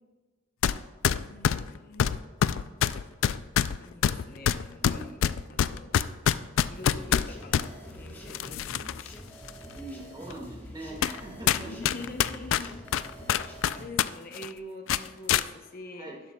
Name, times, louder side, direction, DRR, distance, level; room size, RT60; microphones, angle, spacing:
sound 1, 0.6-0.8 1.0-7.7 8.3-9.1 9.5-9.6 10.3-10.4 11.0-11.2 11.5-14.1 14.3-14.5 14.9-15.5, left 9 dB, 70° left, 0.3 m, -25 dB
voice 1, 1.1-2.2 2.8-5.2 5.5-6.0 6.7-9.1 11.5-12.7 13.0-16.1, left 2 dB, 45° left, 4 dB, 0.7 m, -45 dB
voice 2, 4.8-5.1 9.7-11.9 16.0-16.2, right 1 dB, 20° right, -1 dB, 1.8 m, -42 dB
sound 2, 6.7-13.8, equal, 10° left, 1.3 m, -45 dB
12.0 x 11.0 x 2.2 m, 1.3 s
head